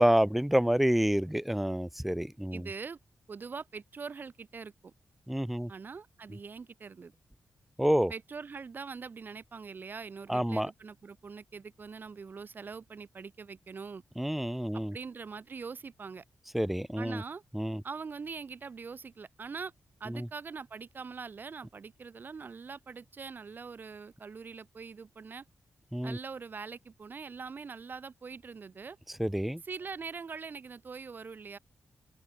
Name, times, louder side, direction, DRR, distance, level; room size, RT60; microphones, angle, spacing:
voice 1, 0.0-2.7 5.3-5.7 7.8-8.1 10.3-10.7 14.2-14.9 16.5-17.2 17.5-17.8 20.1-20.3 25.9-26.2 29.2-29.6, equal, 5° right, 0.7 m, -28 dB
voice 2, 2.5-3.0 3.3-4.9 5.7-7.1 8.1-14.0 14.9-16.2 17.0-17.4 17.8-19.7 20.0-25.4 26.0-29.0 29.6-31.6, right 5 dB, 40° right, 3.7 m, -43 dB
open air
wide cardioid pair, 155°, 5 cm